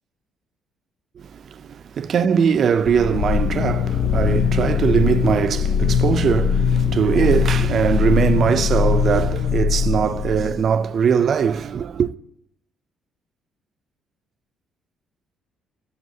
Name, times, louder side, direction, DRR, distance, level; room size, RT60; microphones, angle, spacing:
voice 1, 1.2-12.1, right 7 dB, 50° right, 0.4 m, -21 dB
sound 1, 2.8-10.7, left 7 dB, 65° left, 0.3 m, -21 dB
12.5 x 7.3 x 2.7 m
cardioid pair, 120°, 0 cm